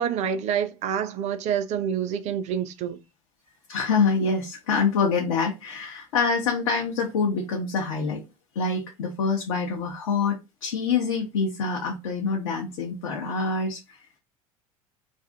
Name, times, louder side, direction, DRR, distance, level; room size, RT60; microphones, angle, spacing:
voice 1, 0.0-3.0, right 8 dB, 40° right, 0.5 m, -27 dB
voice 2, 3.7-8.2 8.6-14.0, left 5 dB, 65° left, 0.7 m, -26 dB
2.6 x 2.5 x 3.3 m
figure-of-eight pair, 70°, 18 cm